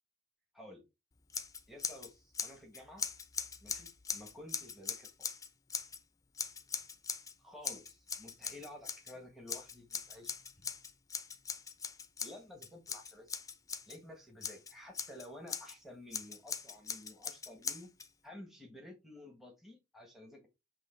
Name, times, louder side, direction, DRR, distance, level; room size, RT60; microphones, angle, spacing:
Scissors, 1.3-2.1 2.3-6.0 6.4-7.3 7.6-9.1 9.5-14.0 14.4-15.7 16.1-18.1, left 6 dB, 20° left, 0.6 m, -40 dB
voice 1, 1.7-3.0 3.6-5.3 7.4-10.3 12.2-13.4 13.9-17.9 18.2-20.5, left 1 dB, ahead, 1 dB, 1.4 m, -52 dB
7.6 x 3.2 x 4.4 m, 0.24 s
head